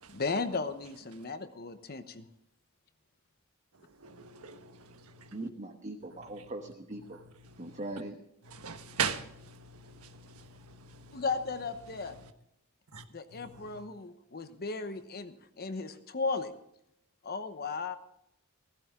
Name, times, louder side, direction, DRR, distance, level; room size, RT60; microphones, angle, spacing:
voice 1, 0.1-2.3 11.1-12.2 13.1-16.5 17.2-18.0, left 4 dB, 45° left, 1.0 m, -35 dB
voice 2, 4.0-5.4 6.4-6.5 7.4-7.8 8.5-11.2 12.9-13.0 13.3-13.8, right 6 dB, 90° right, 1.3 m, -40 dB
voice 3, 5.3-7.2 7.6-8.2, right 2 dB, 35° right, 1.1 m, -40 dB
16.0 x 15.5 x 3.7 m
head